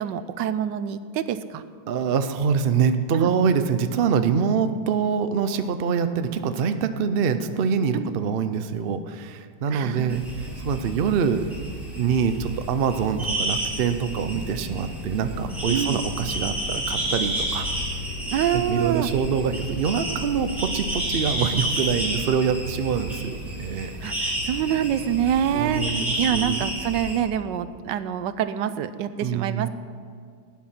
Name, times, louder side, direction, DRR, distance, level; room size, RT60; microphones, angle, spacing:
voice 1, 0.0-1.6 3.1-3.3 7.9-8.1 9.7-10.2 15.7-16.0 18.3-19.1 24.0-29.7, right 9 dB, 90° right, 13 dB, 1.3 m, -26 dB
voice 2, 1.9-10.2 10.6-11.5 11.9-17.7 18.5-23.9 25.5-26.7 29.2-29.7, right 6 dB, 65° right, 9 dB, 0.5 m, -25 dB
sound 1, 10.1-27.2, right 1 dB, ahead, 3.4 m, -30 dB
17.0 x 9.6 x 5.8 m, 2.1 s
omnidirectional pair, 1.9 m